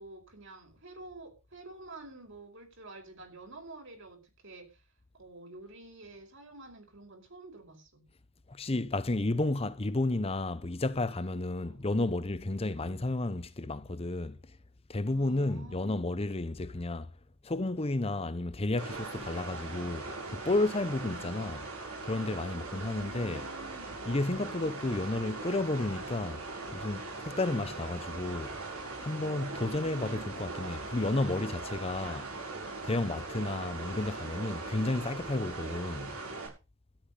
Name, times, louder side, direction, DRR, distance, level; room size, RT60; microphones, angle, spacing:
voice 1, 0.0-4.8 5.1-8.0 11.6-11.9 12.7-13.0 15.1-16.2 21.1-21.4 22.7-24.1 24.6-25.4 27.4-27.7 29.5-30.4, right 2 dB, 60° right, 5.2 m, -50 dB
voice 2, 8.5-14.4 14.9-17.1 17.4-21.7 22.0-23.4 24.1-28.6 29.0-32.3 32.8-36.2, left 2 dB, 25° left, 0.8 m, -32 dB
sound 1, 18.8-36.5, right 3 dB, 85° right, 7.0 m, -40 dB
13.0 x 10.5 x 5.6 m
head